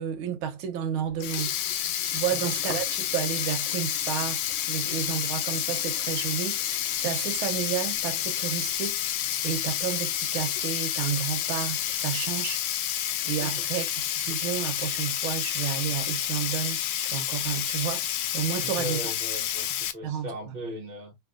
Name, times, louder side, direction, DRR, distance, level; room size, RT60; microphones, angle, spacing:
voice 1, 0.0-1.5 2.0-4.4 4.7-9.0 9.4-12.6 13.2-18.0 18.3-19.0 20.0-20.3, right 9 dB, 85° right, 1.6 m, -31 dB
Sink (filling or washing), 1.1-19.9, left 11 dB, 90° left, 1.4 m, -29 dB
voice 2, 18.6-21.2, equal, 50° right, 0.5 m, -38 dB
3.7 x 2.6 x 2.4 m
omnidirectional pair, 2.3 m